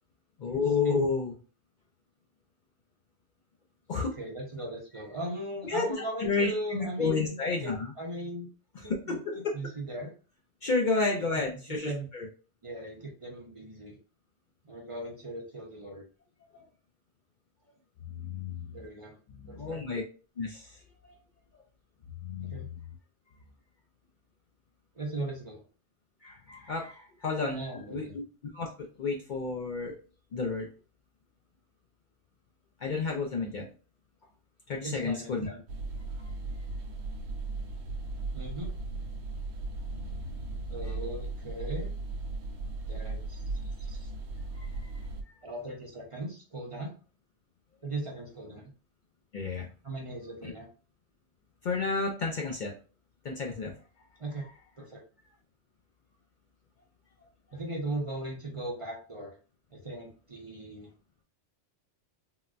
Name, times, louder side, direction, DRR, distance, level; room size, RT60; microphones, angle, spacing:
voice 1, 0.4-1.4 3.9-4.2 5.6-5.9 6.2-7.9 9.1-9.4 10.6-12.3 18.1-18.7 19.4-20.0 20.4-20.7 22.2-22.6 26.2-28.2 28.5-30.0 30.3-30.7 32.8-33.7 34.7-35.5 39.9-40.1 40.5-40.6 44.6-44.7 49.3-49.7 50.4-50.5 51.6-52.7 53.2-53.7, left 4 dB, 55° left, 0 dB, 0.5 m, -31 dB
voice 2, 4.0-8.5 8.8-10.1 11.7-12.1 12.6-14.0 14.6-16.0 18.7-19.2 19.5-19.8 22.4-22.7 24.9-25.6 27.5-28.2 34.8-35.6 38.3-38.7 40.7-41.9 42.9-43.4 43.8-44.1 45.4-46.9 47.8-48.7 49.8-50.7 54.2-54.4 54.8-55.0 57.5-59.3 59.7-60.9, right 1 dB, 35° right, -2 dB, 0.6 m, -38 dB
sound 1, 35.7-45.2, right 3 dB, 85° right, 0.9 m, -37 dB
3.8 x 2.1 x 2.4 m, 0.37 s
omnidirectional pair, 1.1 m